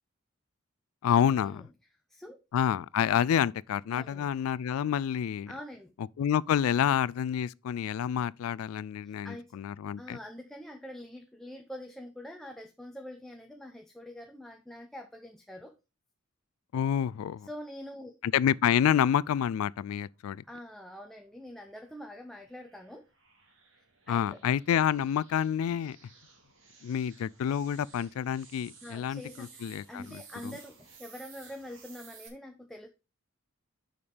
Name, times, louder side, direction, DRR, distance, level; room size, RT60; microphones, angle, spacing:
voice 1, 1.0-1.7 2.5-5.5 6.2-10.2 16.7-17.5 18.2-20.4 24.1-26.0 26.8-30.5, left 9 dB, 80° left, 0.3 m, -28 dB
voice 2, 3.9-4.3 5.5-5.9 9.0-9.4 10.0-15.7 17.4-18.1 20.5-23.0 23.8-24.4 28.8-32.9, left 1 dB, ahead, 0.6 m, -45 dB
sound 1, 20.7-32.3, right 5 dB, 60° right, 2.2 m, -56 dB
6.9 x 5.2 x 5.0 m
head